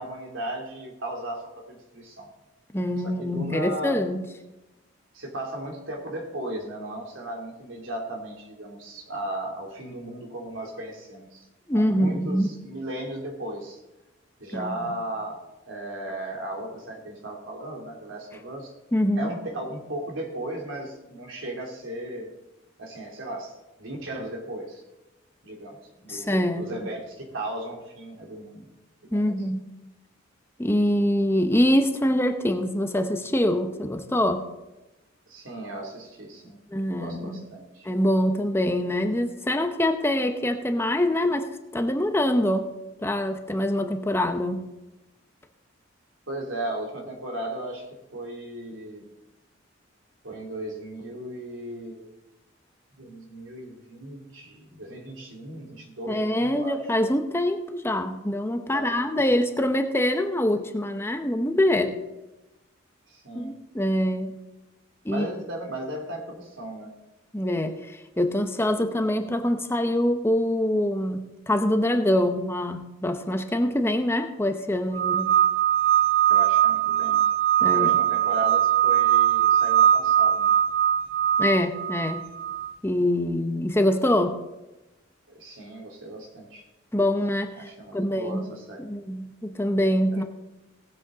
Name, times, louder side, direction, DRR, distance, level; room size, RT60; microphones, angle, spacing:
voice 1, 0.0-2.3 3.0-4.0 5.1-11.4 11.7-13.8 14.4-18.7 19.1-22.4 22.8-24.8 25.4-28.7 29.0-29.4 35.3-36.6 36.9-37.9 46.3-47.8 48.1-49.1 50.2-52.1 53.0-56.8 58.7-59.3 63.1-63.5 65.1-66.9 76.3-77.2 77.6-80.5 85.3-86.6 87.5-88.8, right 1 dB, 80° right, 0 dB, 3.0 m, -36 dB
voice 2, 2.7-4.3 11.7-12.5 14.5-14.9 18.9-19.3 26.1-26.7 29.1-29.6 30.6-34.5 36.7-37.4 37.8-42.7 43.0-44.6 56.1-62.0 63.3-64.3 65.0-65.3 67.3-75.3 77.6-77.9 81.4-82.2 82.8-84.4 86.9-88.5 88.8-90.2, left 1 dB, 10° left, 6 dB, 0.7 m, -24 dB
sound 1, 74.9-82.7, right 10 dB, 50° right, 0.5 m, -21 dB
18.5 x 7.9 x 3.9 m, 1.0 s
head